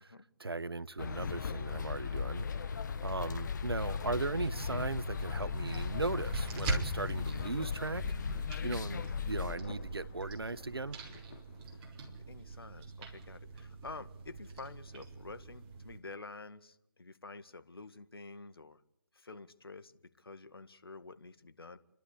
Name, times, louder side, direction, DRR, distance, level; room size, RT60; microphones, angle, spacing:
voice 1, 0.4-8.0 8.3-11.0, right 3 dB, 85° right, 1.1 m, -38 dB
sound 1, 1.0-9.6, left 6 dB, 50° left, 1.4 m, -37 dB
sound 2, 3.8-16.0, right 3 dB, 25° right, 4.1 m, -43 dB
Thunder, 9.4-12.4, left 6 dB, 35° left, 1.6 m, -55 dB
voice 2, 12.3-18.8 19.1-21.8, left 3 dB, 80° left, 1.8 m, -49 dB
29.5 x 12.5 x 8.6 m
figure-of-eight pair, 145°, 12 cm